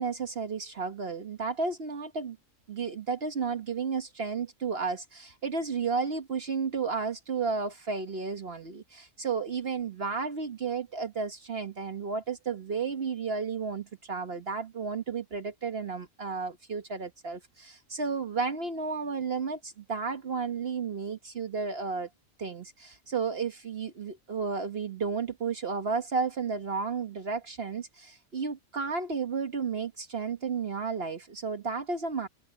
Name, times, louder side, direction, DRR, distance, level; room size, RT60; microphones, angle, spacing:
voice 1, 0.0-2.4 2.7-22.1 22.4-32.3, right 5 dB, 50° right, 1.4 m, -32 dB
open air
omnidirectional pair, 1.4 m